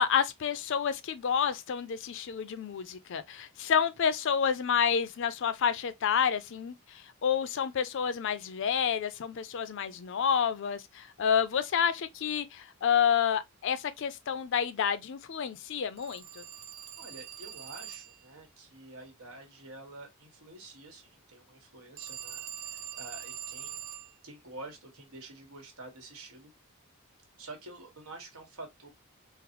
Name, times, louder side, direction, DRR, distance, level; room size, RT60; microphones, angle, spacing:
voice 1, 0.0-16.4, left 7 dB, 55° left, 0.4 m, -29 dB
Telephone, 16.0-18.3 22.0-24.2, right 10 dB, 60° right, 0.5 m, -43 dB
voice 2, 17.0-23.8 24.2-26.5 27.4-28.9, right 2 dB, 85° right, 1.2 m, -48 dB
3.7 x 2.0 x 2.8 m
head